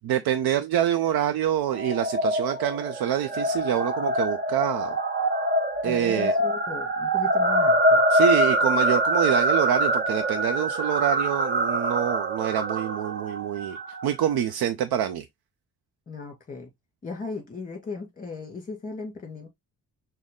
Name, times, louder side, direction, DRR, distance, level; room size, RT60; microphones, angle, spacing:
voice 1, 0.0-5.0 5.8-6.3 8.1-13.8 14.0-15.3, right 10 dB, 70° right, 0.6 m, -26 dB
sound 1, 1.7-14.1, right 1 dB, 25° right, 0.8 m, -24 dB
voice 2, 5.8-8.0 16.1-16.7 17.0-19.5, left 4 dB, 20° left, 2.1 m, -37 dB
6.3 x 2.1 x 3.6 m
cardioid pair, 140°, 38 cm